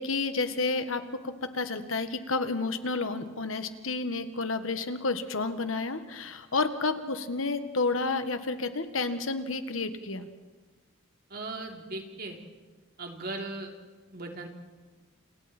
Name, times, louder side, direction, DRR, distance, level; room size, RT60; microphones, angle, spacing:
voice 1, 0.0-10.3, left 3 dB, 80° left, 9 dB, 1.7 m, -30 dB
voice 2, 11.3-12.4 13.0-13.7 14.1-14.5, right 2 dB, 50° right, 2 dB, 3.3 m, -38 dB
30.0 x 29.5 x 4.4 m, 1.3 s
head